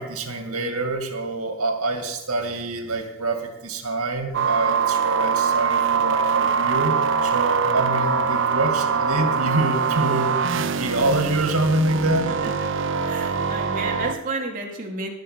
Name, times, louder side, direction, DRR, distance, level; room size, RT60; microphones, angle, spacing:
voice 1, 0.0-7.0 7.2-12.3, right 2 dB, 85° right, 5 dB, 2.3 m, -26 dB
sound 1, 4.3-14.1, right 6 dB, 60° right, 0.7 m, -23 dB
voice 2, 13.1-15.1, right 3 dB, 40° right, 1 dB, 2.6 m, -31 dB
18.5 x 6.5 x 6.8 m, 1.0 s
head